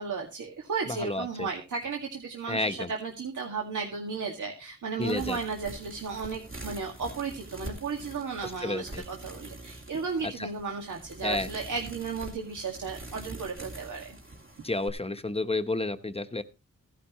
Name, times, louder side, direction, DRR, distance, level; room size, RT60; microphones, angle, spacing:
voice 1, 0.0-14.2, right 5 dB, 80° right, 1 dB, 2.0 m, -34 dB
voice 2, 0.9-1.5 2.5-2.9 5.0-5.4 8.6-9.0 10.4-10.5 11.2-11.5 14.6-16.4, left 2 dB, 20° left, 10 dB, 0.9 m, -30 dB
sound 1, 5.0-14.9, right 2 dB, 45° right, 2.6 m, -44 dB
15.5 x 10.0 x 3.0 m, 0.29 s
wide cardioid pair, 100°, 30 cm